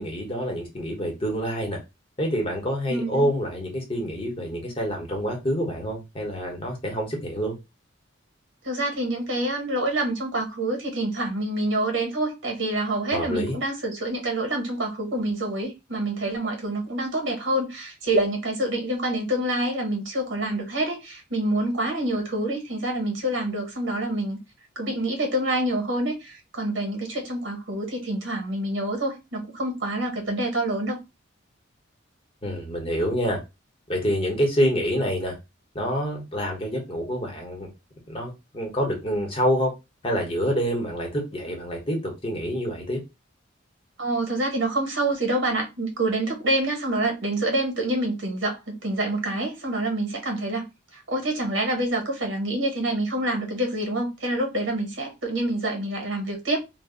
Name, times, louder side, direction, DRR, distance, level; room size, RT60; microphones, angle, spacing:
voice 1, 0.0-1.8 2.2-7.6 13.1-13.5 32.4-33.4 33.9-35.4 35.7-37.7 38.1-39.7 40.0-43.0, equal, 25° left, 0.9 m, -27 dB
voice 2, 2.9-3.2 8.6-24.4 24.8-31.0 44.0-50.7 51.1-56.6, right 1 dB, 60° right, 0.9 m, -27 dB
2.5 x 2.0 x 3.7 m
head